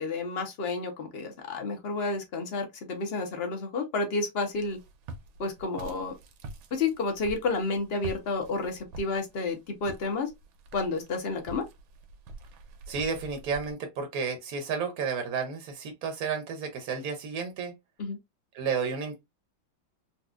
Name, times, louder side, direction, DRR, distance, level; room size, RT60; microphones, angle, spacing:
voice 1, 0.0-4.8 5.4-6.1 6.7-10.3 10.7-11.7 18.0-18.2, left 3 dB, 50° left, 0.7 m, -30 dB
Walk footsteps, 4.5-13.7, right 2 dB, 85° right, 1.5 m, -46 dB
voice 2, 12.9-17.7 18.5-19.2, right 5 dB, 60° right, 1.0 m, -32 dB
4.1 x 2.3 x 2.3 m
omnidirectional pair, 2.1 m